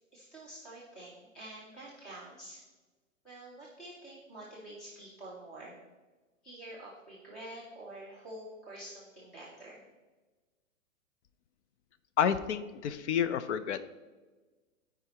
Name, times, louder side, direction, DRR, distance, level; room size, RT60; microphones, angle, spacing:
voice 1, 0.1-2.6 3.2-5.8 6.4-9.8, right 1 dB, ahead, -6 dB, 0.3 m, -47 dB
voice 2, 12.2-13.8, left 8 dB, 60° left, 13 dB, 0.6 m, -29 dB
12.5 x 4.8 x 2.8 m, 1.3 s
hypercardioid pair, 145°, 40 cm